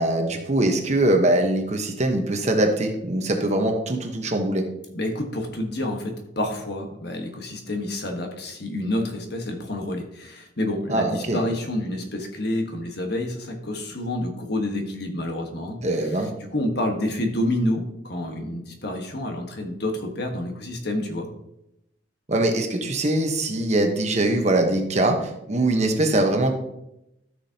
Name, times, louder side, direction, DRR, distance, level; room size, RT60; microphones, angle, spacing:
voice 1, 0.0-4.7 10.9-11.4 15.8-16.3 22.3-26.5, right 1 dB, 35° right, 4 dB, 1.1 m, -22 dB
voice 2, 4.9-15.8 16.5-21.3, left 1 dB, 55° left, 3 dB, 1.4 m, -28 dB
13.5 x 6.2 x 2.8 m, 0.84 s
head